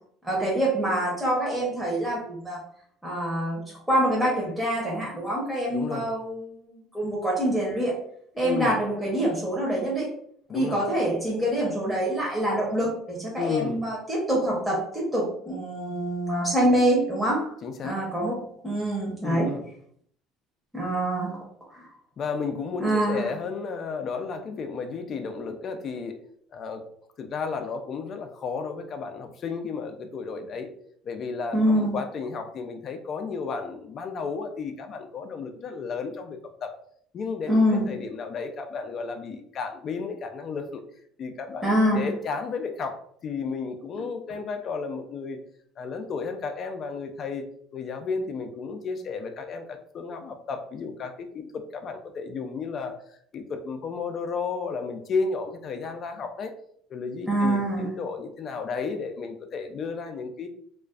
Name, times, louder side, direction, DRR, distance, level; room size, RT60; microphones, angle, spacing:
voice 1, 0.2-2.6 3.0-7.9 8.4-10.1 10.5-17.5 17.8-19.5 20.7-21.4 21.7-21.9 22.8-23.3 31.5-31.9 37.5-37.9 41.6-42.1 57.3-57.9, right 1 dB, 5° right, -5 dB, 0.8 m, -25 dB
voice 2, 5.7-6.1 8.4-8.8 10.5-10.8 13.4-13.8 17.6-18.0 19.2-19.6 22.2-26.2 26.5-26.8 27.2-30.7 31.0-36.7 37.1-40.8 41.2-45.4 45.8-47.4 47.7-56.5 56.9-60.5, left 5 dB, 45° left, 6 dB, 0.3 m, -33 dB
2.4 x 2.2 x 2.3 m, 0.63 s
supercardioid pair, 100°, 0 cm